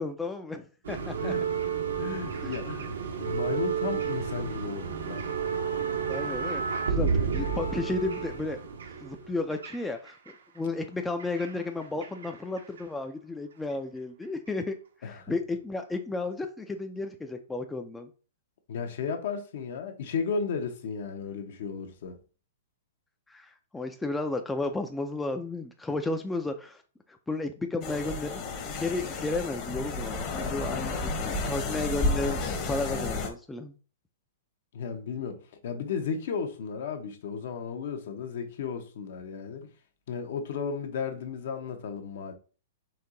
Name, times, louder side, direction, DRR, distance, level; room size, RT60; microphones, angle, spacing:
voice 1, 0.0-1.3 2.4-2.5 6.1-8.6 9.0-10.1 10.6-14.8 15.0-18.1 23.3-26.8 27.3-33.7, left 2 dB, 5° left, 0.4 m, -33 dB
sound 1, 0.8-10.3 11.2-12.3 12.6-12.8 13.7-13.8, right 6 dB, 85° right, 0.9 m, -31 dB
voice 2, 2.0-5.6 15.0-15.3 18.7-22.2 34.7-39.7 40.1-42.3, left 6 dB, 65° left, 0.9 m, -34 dB
sound 2, 27.8-33.3, left 3 dB, 30° left, 1.0 m, -31 dB
4.5 x 2.8 x 3.8 m
hypercardioid pair, 145°, 0 cm